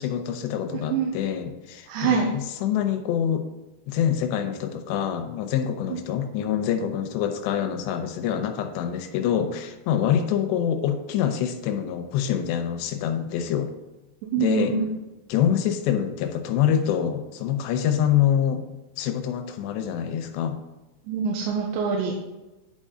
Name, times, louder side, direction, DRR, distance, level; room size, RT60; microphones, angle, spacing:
voice 1, 0.0-3.5 3.9-13.7 14.4-14.8 15.3-18.7 19.0-20.6, left 9 dB, 80° left, 6 dB, 2.9 m, -25 dB
voice 2, 1.9-2.3 14.3-14.9 21.1-22.1, right 6 dB, 85° right, -1 dB, 3.2 m, -24 dB
11.0 x 5.5 x 3.7 m, 1.0 s
omnidirectional pair, 5.2 m